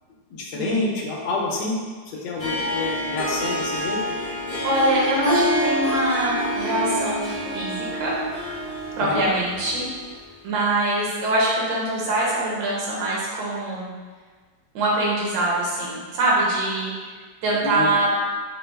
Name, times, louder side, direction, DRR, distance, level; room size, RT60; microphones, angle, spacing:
voice 1, 0.3-1.8 2.1-4.0 9.0-9.3 17.5-17.9, left 3 dB, 75° left, -2 dB, 1.2 m, -28 dB
Harp, 2.4-10.1, equal, 30° left, 0.7 m, -27 dB
voice 2, 4.6-8.2 9.0-9.9 10.4-13.9 14.7-16.9 17.4-18.1, right 1 dB, 85° right, -5 dB, 1.4 m, -23 dB
4.3 x 2.2 x 2.2 m, 1.4 s
omnidirectional pair, 2.0 m